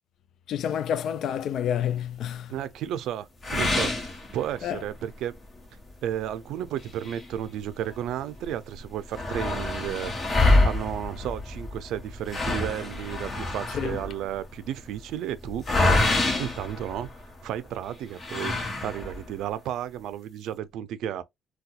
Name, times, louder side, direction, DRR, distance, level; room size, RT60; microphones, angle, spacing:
voice 1, 0.5-2.5 4.6-4.8 13.7-14.0, left 9 dB, 75° left, 0.4 m, -29 dB
voice 2, 2.5-3.9 4.3-5.4 6.0-10.1 10.6-15.7 16.4-17.1 17.4-21.2, right 11 dB, 85° right, 0.4 m, -33 dB
sound 1, 3.4-4.9 5.3-5.4 5.9-6.0 6.8-8.1 8.4-8.5 8.7-17.5 18.2-19.3, left 2 dB, 35° left, 1.4 m, -26 dB
4.1 x 2.3 x 2.3 m
cardioid pair, 90°, 0 cm